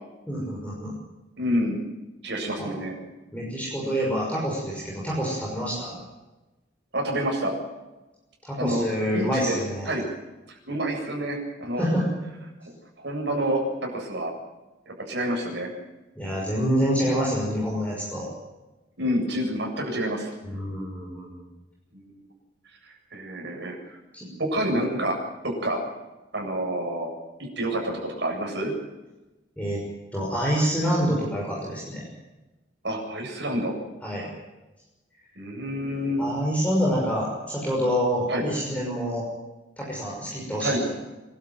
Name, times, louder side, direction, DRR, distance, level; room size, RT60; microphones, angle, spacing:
voice 1, 0.3-1.0 2.6-2.7 3.3-6.0 8.4-9.9 11.8-12.1 16.2-18.3 20.4-21.5 24.1-24.2 29.6-29.8 30.1-32.0 34.0-34.3 36.2-39.3 39.8-40.9, equal, 10° left, -5 dB, 6.1 m, -27 dB
voice 2, 1.4-1.8 2.2-3.0 6.9-7.5 8.5-8.8 9.1-9.6 9.8-10.0 10.5-11.9 12.6-12.7 13.0-14.3 14.9-15.7 19.0-20.3 21.9-22.2 23.1-23.8 24.4-25.2 25.4-25.8 26.3-27.1 27.4-28.7 32.8-33.7 35.3-36.2 38.3-38.4 40.6-40.8, right 1 dB, 70° right, -1 dB, 8.0 m, -28 dB
26.5 x 12.5 x 9.4 m, 1.1 s
head